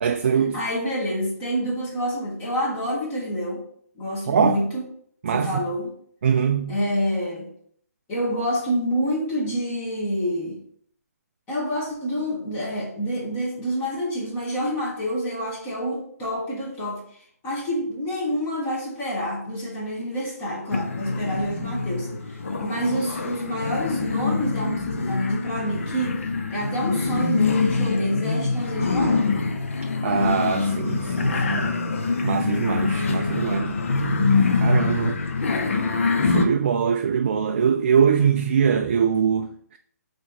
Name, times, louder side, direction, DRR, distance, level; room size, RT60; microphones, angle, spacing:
voice 1, 0.0-0.6 4.3-4.6 5.2-5.6 6.2-6.8 30.0-31.7 32.2-33.8 34.5-35.2 36.2-39.8, right 7 dB, 40° right, 0.4 m, -22 dB
voice 2, 0.5-3.6 4.0-4.8 5.3-5.9 6.7-7.5 8.1-10.6 11.5-17.0 17.4-26.2 26.5-29.3, equal, 20° left, 2.2 m, -27 dB
sound 1, 20.7-36.5, left 4 dB, 50° left, 0.8 m, -24 dB
7.8 x 3.4 x 4.2 m
figure-of-eight pair, 140°, 9 cm